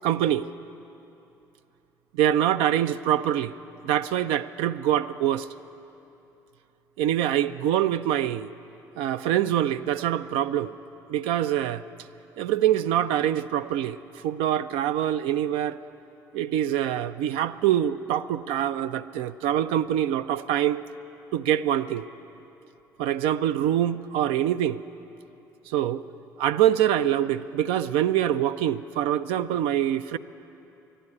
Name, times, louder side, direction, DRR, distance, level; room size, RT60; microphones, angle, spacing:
voice 1, 0.0-0.5 2.1-3.5 3.8-5.5 7.0-8.5 9.0-10.7 11.1-11.8 12.4-15.8 16.3-20.8 21.3-22.1 23.0-24.8 25.7-26.0 26.4-30.2, right 11 dB, 65° right, 11 dB, 0.4 m, -24 dB
12.0 x 11.0 x 9.7 m, 2.9 s
hypercardioid pair, 50°, 10 cm